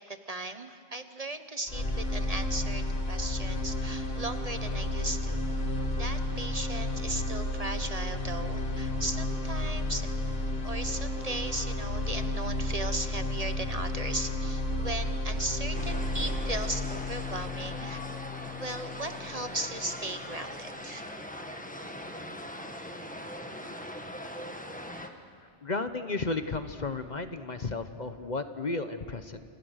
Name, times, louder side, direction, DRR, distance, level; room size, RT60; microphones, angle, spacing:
voice 1, 0.1-5.4 6.0-10.1 10.6-18.0 18.5-21.1, right 2 dB, 35° right, 9 dB, 1.1 m, -37 dB
sound 1, 1.7-19.7, left 1 dB, 60° left, 2.8 m, -32 dB
sound 2, 15.7-25.1, equal, 5° left, 1.6 m, -41 dB
voice 2, 25.6-29.4, left 3 dB, 40° left, 9 dB, 1.1 m, -33 dB
29.0 x 28.0 x 6.5 m, 2.3 s
omnidirectional pair, 1.2 m